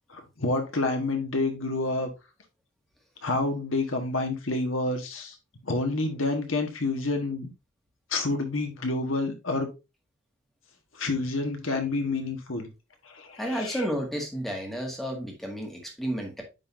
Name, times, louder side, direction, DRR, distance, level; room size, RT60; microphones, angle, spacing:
voice 1, 0.1-2.1 3.2-5.3 5.6-7.5 8.1-9.7 11.0-12.7 13.1-13.9, left 2 dB, 90° left, 1.5 m, -28 dB
voice 2, 13.4-16.4, equal, ahead, 1.7 m, -31 dB
9.3 x 3.9 x 2.7 m
head